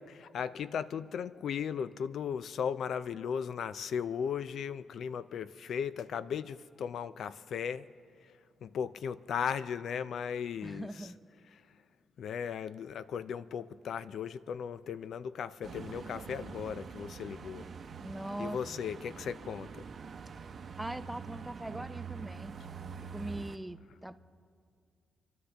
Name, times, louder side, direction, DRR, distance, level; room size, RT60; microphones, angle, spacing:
voice 1, 0.1-7.9 8.6-10.9 12.2-17.7 18.4-19.8, left 7 dB, 75° left, 15 dB, 0.3 m, -36 dB
voice 2, 10.6-11.2 18.0-18.6 20.8-22.5 23.1-24.2, right 1 dB, 10° right, 11 dB, 0.5 m, -41 dB
sound 1, 15.6-23.6, right 6 dB, 55° right, 0.8 m, -45 dB
28.5 x 11.5 x 3.4 m, 2.2 s
cardioid pair, 85°, 0 cm